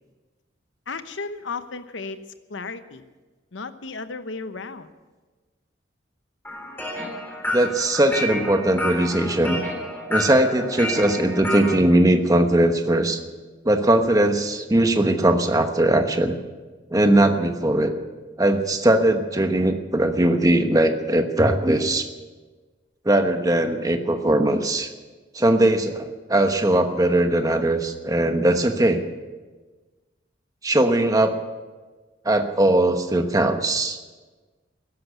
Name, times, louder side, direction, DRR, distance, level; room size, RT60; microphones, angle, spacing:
voice 1, 0.9-2.2 2.5-3.0 3.5-4.9, left 4 dB, 90° left, 11 dB, 1.0 m, -34 dB
sound 1, 6.4-11.8, equal, 10° left, 3.8 m, -30 dB
voice 2, 7.5-9.6 10.1-13.2 13.6-16.4 16.9-18.0 18.4-22.1 23.0-24.9 25.3-29.0 30.6-31.4 32.2-34.0, right 1 dB, 20° right, 6 dB, 1.1 m, -20 dB
14.5 x 11.5 x 8.2 m, 1.3 s
head